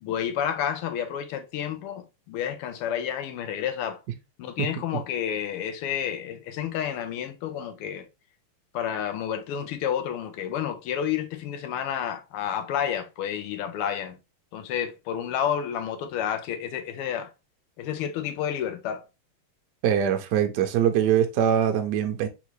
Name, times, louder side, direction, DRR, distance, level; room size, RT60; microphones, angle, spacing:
voice 1, 0.0-4.0 4.4-8.1 8.7-14.2 14.5-17.3 17.8-19.0, left 9 dB, 90° left, 1.5 m, -30 dB
voice 2, 19.8-22.3, right 9 dB, 85° right, 0.9 m, -23 dB
3.7 x 3.6 x 3.0 m
omnidirectional pair, 2.4 m